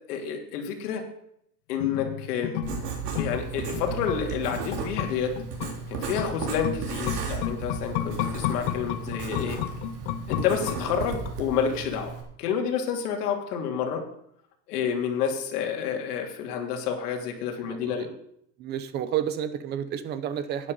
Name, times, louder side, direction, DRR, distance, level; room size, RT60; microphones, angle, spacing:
voice 1, 0.1-1.0 1.7-2.5 3.2-5.3 5.9-9.6 10.3-14.0 14.7-18.1, left 7 dB, 80° left, 3 dB, 3.0 m, -29 dB
sound 1, 1.8-11.3 11.6-11.7, left 13 dB, 45° left, 0.7 m, -33 dB
Writing, 2.6-12.2, right 5 dB, 85° right, 3.9 m, -35 dB
voice 2, 17.6-18.1 18.6-20.7, right 9 dB, 20° right, 13 dB, 0.6 m, -31 dB
12.0 x 10.0 x 5.5 m, 0.72 s
supercardioid pair, 170°, 46 cm